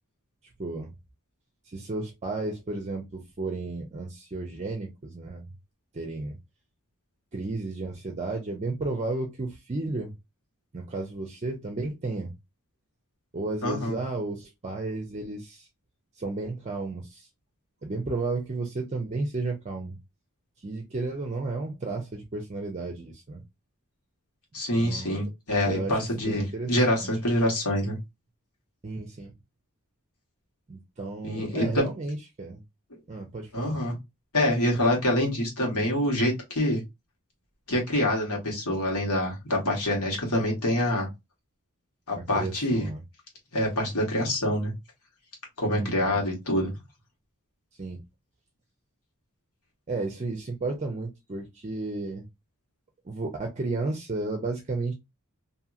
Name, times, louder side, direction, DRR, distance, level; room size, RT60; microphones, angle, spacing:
voice 1, 0.6-0.9 1.6-5.5 5.9-6.4 7.3-10.1 10.7-12.4 13.3-15.7 16.2-17.3 17.8-20.0 20.6-23.4 24.8-25.2 25.6-27.1 28.8-29.3 30.7-32.6 33.1-33.9 42.2-43.0 45.7-46.2 47.8-48.0 49.9-52.3 53.0-54.9, right 3 dB, 30° right, 0.5 m, -33 dB
voice 2, 13.6-13.9 24.5-28.0 31.2-31.9 33.5-33.9 34.3-36.8 37.7-41.1 42.1-42.8 43.5-44.7 45.6-46.7, left 1 dB, 80° left, 1.5 m, -26 dB
2.9 x 2.7 x 2.4 m
head